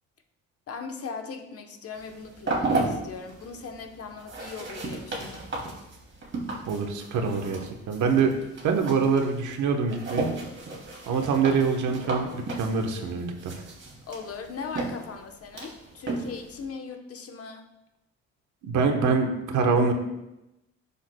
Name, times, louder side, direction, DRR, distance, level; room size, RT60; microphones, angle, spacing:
voice 1, 0.7-5.5 10.9-11.0 14.1-17.7, left 5 dB, 50° left, 4 dB, 1.1 m, -39 dB
sound 1, 1.9-16.6, right 2 dB, 40° right, 2.7 m, -35 dB
voice 2, 6.7-8.3 8.6-10.3 11.1-13.5 18.6-19.9, right 5 dB, 75° right, 4 dB, 1.2 m, -25 dB
10.5 x 7.1 x 2.3 m, 0.92 s
cardioid pair, 90°, 30 cm